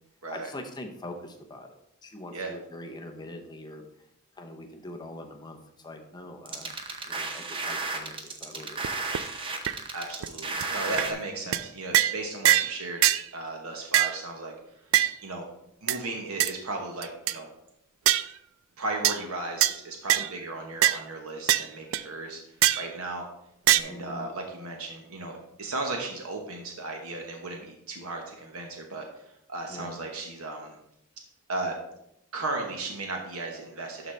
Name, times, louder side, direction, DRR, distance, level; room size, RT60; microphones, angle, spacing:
voice 1, 0.3-4.1 4.3-6.8 7.1-9.0 10.9-11.2 23.9-24.3 29.7-30.0, left 1 dB, 20° left, 4 dB, 0.7 m, -43 dB
sound 1, 6.5-11.1, right 3 dB, 25° right, 0.7 m, -33 dB
sound 2, 8.8-8.9 9.1-9.2 9.7-9.8 10.2-10.3 10.6-10.7 11.0-11.1 11.5-11.7 11.9-12.2 12.5-12.7 13.0-13.2 13.9-14.2 14.9-15.1 15.9-16.0 16.4-16.5 17.0-17.4 18.1-18.3 19.0-19.2 19.6-19.7 20.1-20.3 20.8-21.0 21.5-21.7 21.9-22.0 22.6-22.9 23.7-23.8, right 13 dB, 65° right, 0.3 m, -22 dB
voice 2, 9.9-13.0 13.3-14.5 15.2-15.4 15.8-17.5 18.8-22.4 22.8-23.3 23.7-29.1 29.5-30.8 31.5-31.8 32.3-34.1, right 2 dB, 85° right, 2 dB, 1.1 m, -35 dB
12.0 x 4.0 x 3.3 m, 0.79 s
head